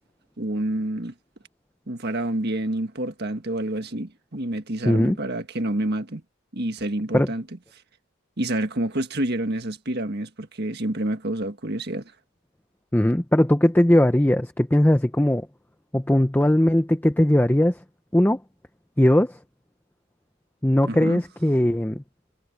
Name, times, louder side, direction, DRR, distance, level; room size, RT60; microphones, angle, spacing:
voice 1, 0.4-1.1 1.9-6.2 6.5-7.4 8.4-12.0 20.9-21.2, right 1 dB, 45° right, 1.7 m, -28 dB
voice 2, 4.8-5.2 7.1-7.3 12.9-15.5 15.9-17.8 18.1-18.4 19.0-19.4 20.6-22.0, left 1 dB, 10° left, 0.6 m, -19 dB
head